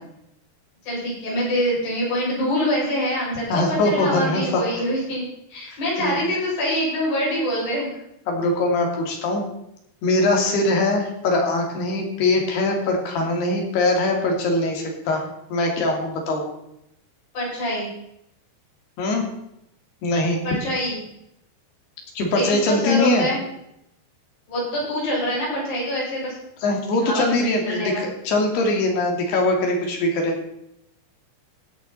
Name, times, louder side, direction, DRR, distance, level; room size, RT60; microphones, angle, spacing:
voice 1, 0.8-7.9 17.3-17.9 20.5-21.0 22.3-23.4 24.5-26.3 27.0-28.0, equal, 60° left, -5 dB, 8.6 m, -25 dB
voice 2, 3.5-4.8 5.7-6.2 8.3-9.4 10.0-15.2 15.5-16.4 19.0-19.2 20.0-20.4 22.2-23.3 26.6-30.3, left 2 dB, 80° left, 1 dB, 4.7 m, -22 dB
16.5 x 10.5 x 4.2 m, 0.81 s
omnidirectional pair, 4.6 m